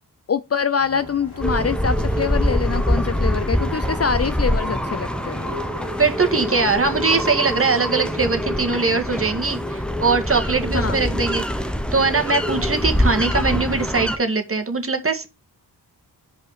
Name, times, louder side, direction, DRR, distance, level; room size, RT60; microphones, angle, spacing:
voice 1, 0.3-5.4 10.7-11.0, left 6 dB, 35° left, 0.5 m, -24 dB
sound 1, 0.8-8.2, right 4 dB, 55° right, 2.2 m, -42 dB
sound 2, 1.0-7.7, left 3 dB, 65° left, 1.3 m, -39 dB
sound 3, 1.4-14.2, equal, ahead, 1.0 m, -24 dB
voice 2, 6.0-11.4 11.9-15.3, right 4 dB, 30° right, 1.9 m, -21 dB
5.7 x 5.4 x 5.7 m
cardioid pair, 50°, 42 cm